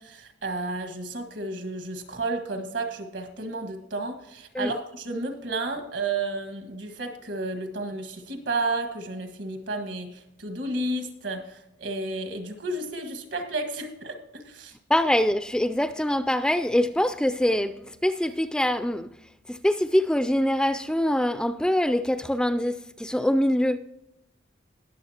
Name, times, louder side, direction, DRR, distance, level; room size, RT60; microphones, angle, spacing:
voice 1, 0.0-14.7, right 2 dB, 75° right, 1.7 m, -32 dB
voice 2, 14.9-19.1 19.5-23.8, left 1 dB, 5° left, 0.3 m, -24 dB
20.0 x 7.3 x 2.9 m
head